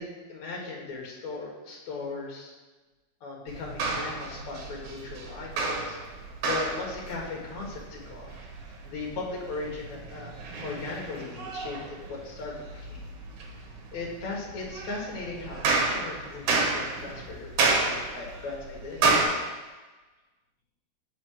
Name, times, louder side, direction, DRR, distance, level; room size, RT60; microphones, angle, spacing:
voice 1, 0.0-2.5 3.2-8.3 8.8-10.3 10.6-13.0 13.9-19.5, left 3 dB, 60° left, -2 dB, 2.2 m, -38 dB
sound 1, 3.5-19.3, right 3 dB, 65° right, 2.3 m, -31 dB
5.6 x 5.2 x 6.3 m, 1.2 s
omnidirectional pair, 4.4 m